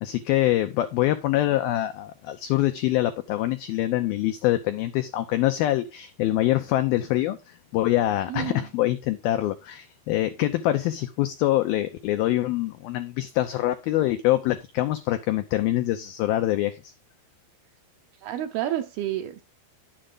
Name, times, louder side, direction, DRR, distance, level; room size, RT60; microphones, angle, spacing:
voice 1, 0.0-16.9, left 15 dB, 85° left, 2.1 m, -25 dB
voice 2, 8.3-8.7 18.2-19.4, right 12 dB, 75° right, 2.4 m, -30 dB
10.0 x 7.5 x 3.8 m
omnidirectional pair, 5.2 m